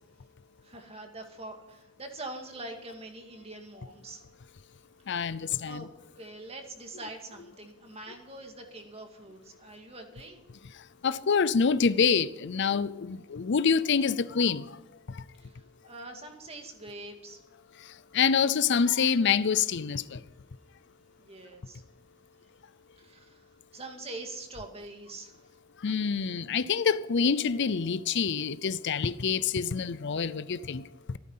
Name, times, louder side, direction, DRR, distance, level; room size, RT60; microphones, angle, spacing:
voice 1, 0.6-4.2 5.0-5.3 5.6-5.9 6.2-10.4 15.4-17.4 21.2-21.8 23.0-25.5 26.1-26.4, right 2 dB, 30° right, 2.2 m, -44 dB
voice 2, 5.1-5.8 11.0-14.8 15.1-15.2 18.1-20.2 25.8-30.8 31.1-31.2, left 6 dB, 60° left, 0.5 m, -26 dB
14.5 x 12.5 x 5.6 m
head